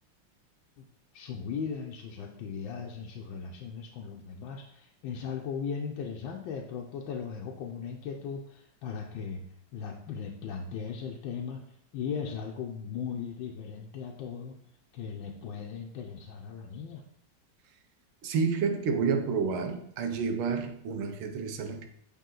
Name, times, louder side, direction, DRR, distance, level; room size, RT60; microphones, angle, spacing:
voice 1, 1.1-9.4 9.7-11.6 11.9-14.6 14.9-17.0, left 6 dB, 75° left, 1.4 m, -38 dB
voice 2, 18.2-21.9, right 5 dB, 85° right, 1.6 m, -29 dB
8.4 x 3.7 x 3.8 m
omnidirectional pair, 2.2 m